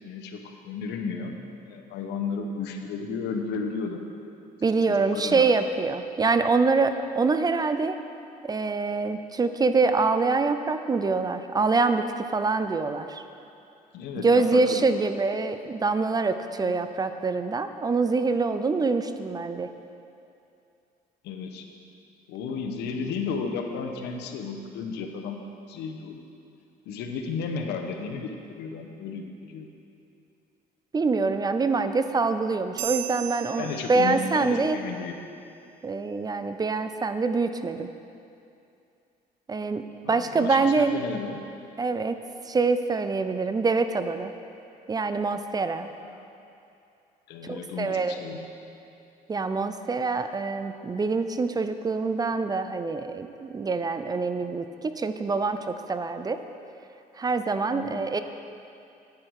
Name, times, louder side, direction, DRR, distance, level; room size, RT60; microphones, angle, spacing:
voice 1, 0.0-1.4 1.7-4.0 4.9-5.5 13.9-14.8 16.6-16.8 21.2-21.7 22.3-25.4 25.7-26.2 26.9-29.7 33.6-35.2 40.0-41.4 46.0-46.2 47.3-48.4 57.7-58.0, left 5 dB, 85° left, 4 dB, 1.1 m, -33 dB
voice 2, 4.6-8.0 8.4-13.2 14.2-19.7 30.9-34.8 35.8-37.9 39.5-40.9 41.8-42.2 42.5-44.3 44.9-45.9 47.4-48.2 49.3-56.4 57.2-58.2, right 4 dB, 25° right, 9 dB, 0.5 m, -25 dB
sound 1, 32.8-34.6, right 11 dB, 90° right, 0.8 m, -36 dB
10.0 x 9.6 x 4.8 m, 2.6 s
cardioid pair, 110°, 17 cm